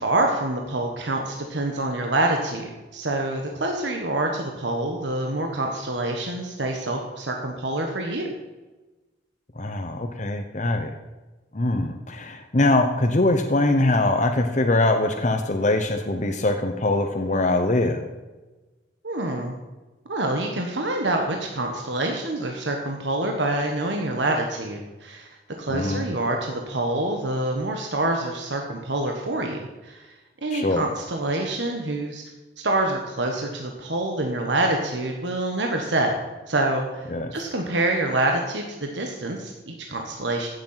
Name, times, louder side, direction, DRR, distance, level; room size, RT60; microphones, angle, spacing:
voice 1, 0.0-8.3 19.0-19.6 20.1-25.3 25.6-30.1 30.4-32.2 32.6-36.1 36.5-40.5, right 2 dB, 75° right, 2 dB, 1.4 m, -26 dB
voice 2, 9.6-10.9 11.5-18.1 25.7-26.0 30.5-30.8 37.1-37.3, left 2 dB, 40° left, 4 dB, 0.9 m, -22 dB
15.5 x 7.2 x 5.8 m, 1.2 s
head